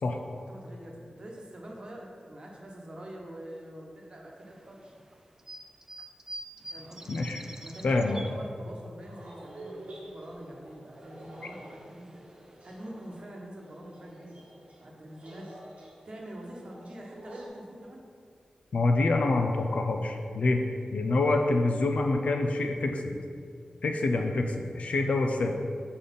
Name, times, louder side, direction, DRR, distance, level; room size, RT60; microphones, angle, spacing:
voice 1, 0.4-5.0 6.7-7.2 7.6-12.2 12.6-14.4 14.8-15.5 16.0-18.1, right 1 dB, 45° right, -1 dB, 1.0 m, -45 dB
sound 1, 4.4-9.0 9.3-10.4 10.7-13.2, right 1 dB, 20° right, 0.4 m, -47 dB
voice 2, 7.1-7.4 7.8-8.2 18.7-20.6 20.9-23.2 23.8-25.5, left 2 dB, 75° left, 3 dB, 0.6 m, -26 dB
sound 2, 9.0-17.5, right 1 dB, 85° right, 1.3 m, -49 dB
5.2 x 4.2 x 5.3 m, 2.3 s
wide cardioid pair, 75°, 2 cm